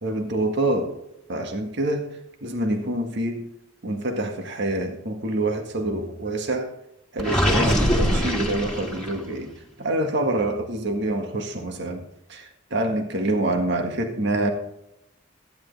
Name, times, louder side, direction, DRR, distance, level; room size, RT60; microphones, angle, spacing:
voice 1, 0.0-0.9 1.3-2.1 2.4-3.5 3.8-6.7 7.1-9.5 9.8-12.0 12.3-14.5, right 1 dB, 65° right, 4 dB, 1.8 m, -26 dB
Gurgling, 7.2-9.3, equal, 5° left, 2.4 m, -23 dB
15.0 x 10.5 x 3.5 m, 0.81 s
head